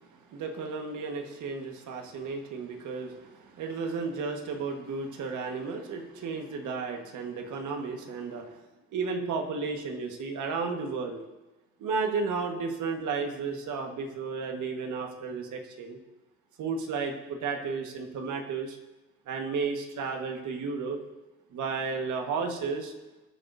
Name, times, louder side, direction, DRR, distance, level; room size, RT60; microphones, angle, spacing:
voice 1, 0.3-8.5 8.9-11.2 11.8-16.0 16.6-18.8 19.3-21.0 21.5-22.9, right 4 dB, 75° right, 3 dB, 1.6 m, -33 dB
18.0 x 9.0 x 2.7 m, 1.1 s
cardioid pair, 90°, 30 cm